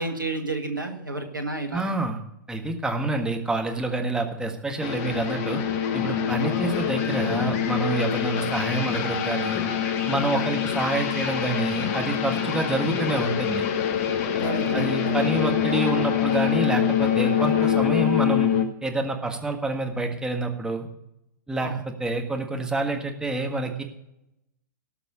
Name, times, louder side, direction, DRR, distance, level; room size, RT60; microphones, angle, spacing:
voice 1, 0.0-1.9 6.4-6.6 10.3-10.5 14.4-15.4 21.6-21.8, right 2 dB, 90° right, 5 dB, 1.8 m, -31 dB
voice 2, 1.7-2.2 2.5-5.6 5.9-9.6 10.1-13.6 14.7-18.5 18.8-20.9 21.5-23.8, right 2 dB, 5° right, 3 dB, 1.7 m, -27 dB
sound 1, 4.8-18.7, left 8 dB, 45° left, 1.2 m, -25 dB
17.5 x 6.0 x 6.4 m, 0.85 s
figure-of-eight pair, 105°, 10 cm